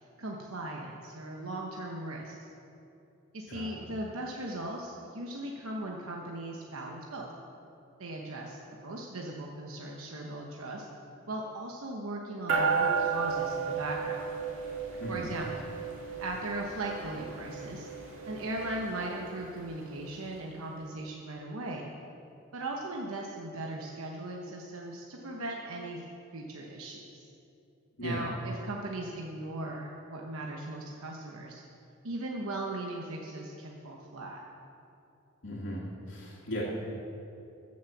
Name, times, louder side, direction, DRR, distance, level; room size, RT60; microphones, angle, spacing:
voice 1, 0.2-2.3 3.3-7.3 8.0-10.9 11.3-14.3 15.1-15.7 16.2-17.9 18.3-21.9 22.5-26.0 26.3-27.2 28.0-31.6 32.0-34.4, right 2 dB, 80° right, -1 dB, 1.0 m, -38 dB
sound 1, 12.5-20.2, right 5 dB, 60° right, 2.2 m, -34 dB
voice 2, 35.4-36.6, equal, 60° left, -7 dB, 1.9 m, -37 dB
14.0 x 6.3 x 7.3 m, 2.8 s
head